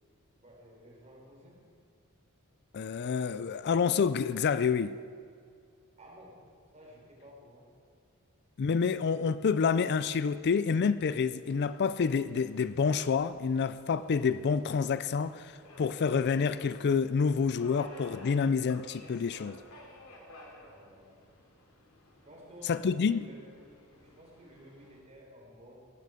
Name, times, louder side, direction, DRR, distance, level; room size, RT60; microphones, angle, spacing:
voice 1, 0.4-1.6 6.0-6.4 6.7-7.7 20.6-21.2 22.2-25.8, equal, 30° right, 4.4 m, -53 dB
voice 2, 2.7-5.0 8.6-15.5 15.8-19.6 22.6-23.2, left 5 dB, 50° left, 0.4 m, -28 dB
Subway metro underground, 11.4-25.0, left 1 dB, 75° left, 3.2 m, -55 dB
17.5 x 13.0 x 5.0 m
head